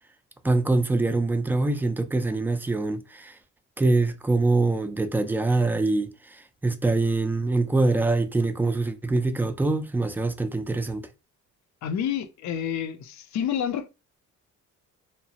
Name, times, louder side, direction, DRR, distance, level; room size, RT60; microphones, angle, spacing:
voice 1, 0.4-3.3 3.8-11.1, right 2 dB, 5° right, 0.3 m, -24 dB
voice 2, 11.8-13.9, left 9 dB, 65° left, 0.5 m, -29 dB
2.8 x 2.0 x 2.8 m
cardioid pair, 90°, 30 cm